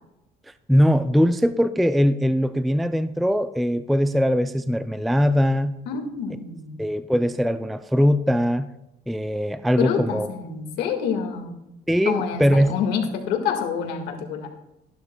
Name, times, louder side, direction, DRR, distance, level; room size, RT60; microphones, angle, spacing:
voice 1, 0.7-5.7 6.8-8.7 9.1-10.3 11.9-12.7, equal, ahead, 11 dB, 0.3 m, -21 dB
voice 2, 5.8-6.8 9.8-11.5 12.0-14.5, left 7 dB, 85° left, 4 dB, 1.8 m, -27 dB
13.5 x 11.5 x 2.3 m, 0.89 s
cardioid pair, 110°, 17 cm